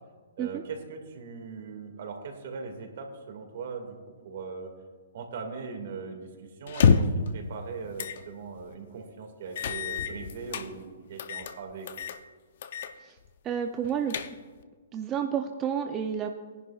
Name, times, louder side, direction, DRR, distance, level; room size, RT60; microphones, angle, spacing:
voice 1, 0.4-4.0 4.2-4.7 5.1-11.9, right 5 dB, 60° right, 4 dB, 2.0 m, -40 dB
sound 1, 6.7-7.3 8.0-8.2 8.6-8.7 9.6-10.7 11.2-11.5 11.9-12.2 12.6-12.9 13.2-13.3 13.8-14.6, left 6 dB, 55° left, 0.6 m, -26 dB
voice 2, 13.4-14.3 14.9-16.3, right 8 dB, 20° right, 4 dB, 0.5 m, -30 dB
19.0 x 10.5 x 2.4 m, 1.4 s
hypercardioid pair, 155°, 0 cm